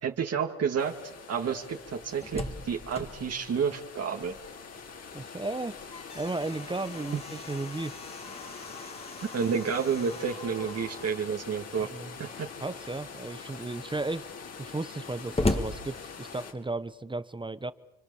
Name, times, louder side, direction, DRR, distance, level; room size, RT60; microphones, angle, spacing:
voice 1, 0.0-1.0 1.3-4.4 9.3-11.9 12.2-12.5, right 6 dB, 55° right, 3 dB, 2.4 m, -30 dB
sound 1, 0.8-16.5, left 5 dB, 55° left, 4.7 m, -45 dB
Slam, 1.9-4.7 5.1-5.2 5.6-11.3 12.2-12.7 13.2-13.3 13.6-16.7, left 2 dB, 20° left, 2.3 m, -38 dB
voice 2, 5.1-5.7 6.1-8.0 11.8-12.2 12.6-14.3 14.6-17.7, right 2 dB, 15° right, 14 dB, 1.0 m, -34 dB
30.0 x 24.0 x 7.2 m, 0.97 s
cardioid pair, 90°, 30 cm